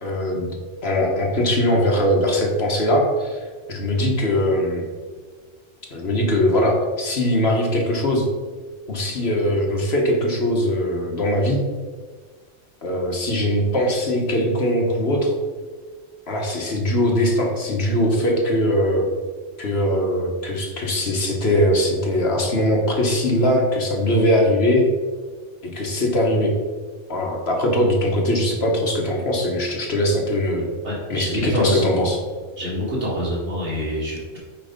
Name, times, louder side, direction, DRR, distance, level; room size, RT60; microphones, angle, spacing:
voice 1, 0.0-0.5 0.8-4.8 5.9-8.3 8.9-11.6 12.8-15.3 16.3-19.1 19.6-24.9 25.6-26.5 27.1-30.7 31.1-32.2, left 1 dB, 55° left, 0 dB, 1.4 m, -21 dB
voice 2, 30.8-32.1 32.6-34.4, equal, 65° right, -6 dB, 2.7 m, -26 dB
8.8 x 3.3 x 5.1 m, 1.5 s
omnidirectional pair, 1.3 m